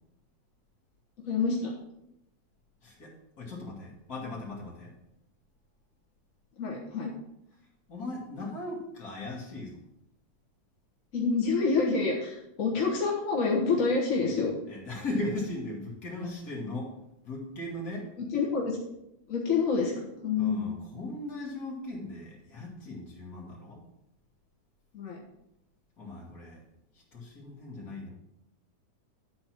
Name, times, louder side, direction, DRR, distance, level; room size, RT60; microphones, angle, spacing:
voice 1, 1.2-1.7 6.6-7.1 11.1-14.5 18.3-18.8 19.3-20.8 24.9-25.2, left 4 dB, 50° left, -3 dB, 0.9 m, -27 dB
voice 2, 2.8-4.9 7.9-9.8 14.7-16.9 17.2-18.1 20.4-23.8 26.0-26.6 27.1-28.1, left 2 dB, 30° left, -3 dB, 2.3 m, -38 dB
11.0 x 4.3 x 6.0 m, 0.85 s
omnidirectional pair, 3.6 m